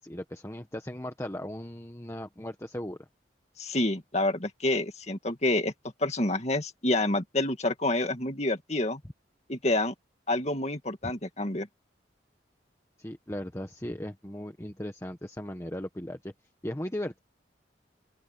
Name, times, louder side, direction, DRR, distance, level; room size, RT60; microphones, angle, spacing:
voice 1, 0.0-3.1 11.0-11.1 13.0-16.3 16.6-17.2, left 1 dB, 15° left, 1.2 m, -37 dB
voice 2, 3.6-5.7 6.0-9.0 9.5-9.9 10.3-11.7, left 2 dB, 35° left, 2.3 m, -28 dB
open air
head